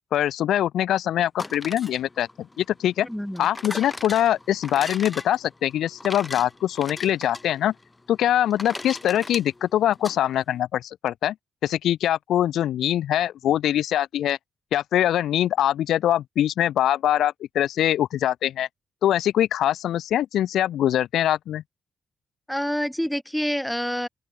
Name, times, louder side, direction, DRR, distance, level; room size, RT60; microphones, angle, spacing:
voice 1, 0.1-2.3 2.6-3.1 3.4-7.7 8.1-11.3 11.6-14.4 14.7-18.7 19.0-21.6, left 11 dB, 85° left, 1.2 m, -23 dB
sound 1, 1.2-10.2, left 2 dB, 25° left, 5.6 m, -39 dB
voice 2, 3.0-3.5 22.5-24.1, equal, 5° left, 2.3 m, -27 dB
open air
cardioid pair, 60°, 0 cm